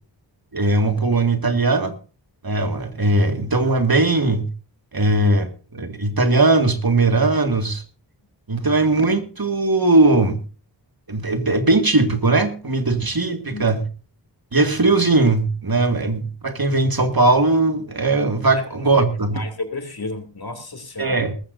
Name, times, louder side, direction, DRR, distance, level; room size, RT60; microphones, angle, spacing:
voice 1, 0.5-1.9 2.4-4.5 4.9-7.8 8.5-10.4 11.1-13.9 14.5-19.5 21.0-21.3, right 2 dB, 50° right, 2.0 m, -19 dB
voice 2, 19.3-21.2, left 3 dB, 50° left, 2.9 m, -32 dB
19.0 x 15.0 x 2.7 m
wide cardioid pair, 80°, 46 cm